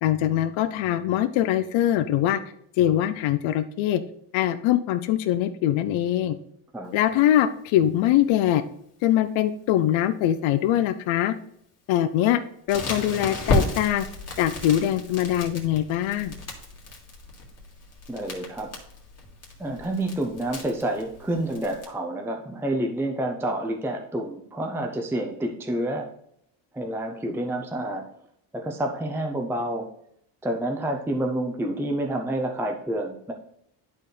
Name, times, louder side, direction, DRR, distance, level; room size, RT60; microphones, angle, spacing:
voice 1, 0.0-2.4 2.8-4.0 4.3-6.4 6.9-8.6 9.0-11.3 11.9-12.4 12.7-14.1 14.4-16.3, left 12 dB, 70° left, 9 dB, 0.6 m, -22 dB
Crackle, 12.7-21.8, left 2 dB, 30° left, 2.0 m, -33 dB
voice 2, 18.1-18.7 19.6-26.1 26.7-28.0 28.5-29.9 30.4-33.3, right 1 dB, 5° right, 3 dB, 0.6 m, -28 dB
11.5 x 4.2 x 3.3 m, 0.71 s
cardioid pair, 120°, 48 cm